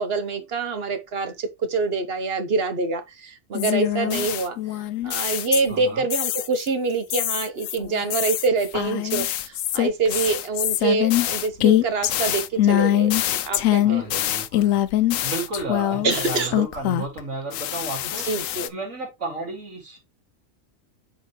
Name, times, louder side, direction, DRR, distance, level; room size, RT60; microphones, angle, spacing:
voice 1, 0.0-4.6 5.0-14.2 16.0-16.5 18.2-18.7, right 4 dB, 50° right, 1.2 m, -26 dB
sound 1, 3.5-5.8 6.1-6.7 7.1-17.2 17.5-18.7, left 13 dB, 80° left, 1.0 m, -23 dB
voice 2, 5.7-6.0 13.8-14.8 15.2-20.0, right 3 dB, 80° right, 2.8 m, -33 dB
7.4 x 4.0 x 3.2 m
omnidirectional pair, 1.4 m